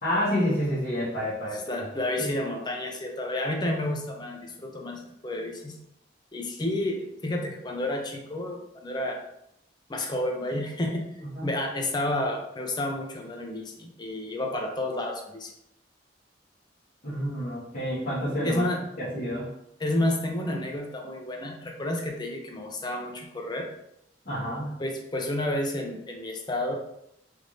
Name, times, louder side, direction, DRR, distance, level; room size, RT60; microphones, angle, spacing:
voice 1, 0.0-1.7 2.2-2.3 11.3-11.5 17.0-18.6 19.0-19.5 24.2-24.8, equal, 50° left, -12 dB, 1.3 m, -29 dB
voice 2, 1.5-5.8 6.3-9.2 9.9-11.1 11.4-15.5 18.4-18.8 19.8-23.7 24.8-26.7, left 1 dB, 25° left, 2 dB, 0.5 m, -30 dB
3.4 x 2.5 x 3.1 m, 0.77 s
head